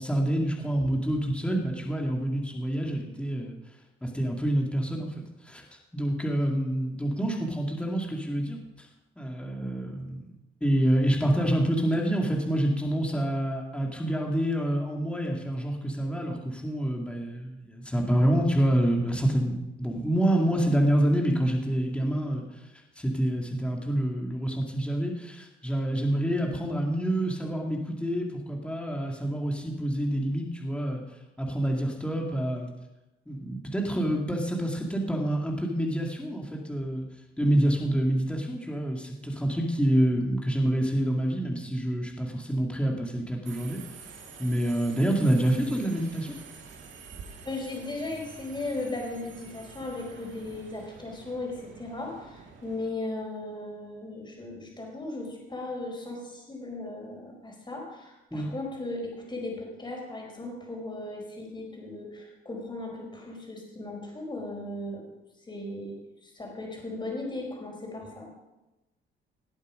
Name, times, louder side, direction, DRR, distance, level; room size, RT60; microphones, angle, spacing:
voice 1, 0.0-3.6 4.0-5.1 5.4-5.6 5.9-8.9 9.2-10.3 10.6-31.0 31.4-32.7 33.3-37.1 37.4-43.8 44.4-46.4 58.3-58.5, right 1 dB, 5° left, 0 dB, 2.4 m, -27 dB
Subway metro underground, 43.4-52.9, right 5 dB, 70° right, 2.2 m, -48 dB
voice 2, 47.4-65.1 65.4-66.0 66.2-68.3, left 2 dB, 25° left, 0 dB, 4.7 m, -37 dB
18.5 x 8.0 x 5.2 m, 1.0 s
cardioid pair, 90°, 20 cm